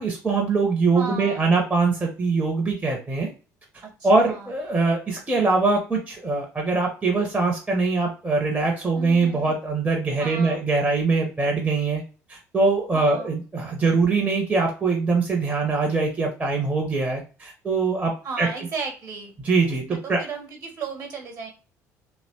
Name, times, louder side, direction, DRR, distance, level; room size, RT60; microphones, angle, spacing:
voice 1, 0.0-3.3 4.0-12.0 12.3-18.5 19.4-20.2, right 3 dB, 15° right, 0 dB, 0.7 m, -23 dB
voice 2, 0.9-1.5 3.8-4.5 8.9-9.5 10.2-10.6 12.9-13.3 18.2-19.3 19.9-21.5, right 4 dB, 45° right, 3 dB, 1.2 m, -35 dB
2.9 x 2.1 x 2.7 m, 0.34 s
figure-of-eight pair, 55°, 9 cm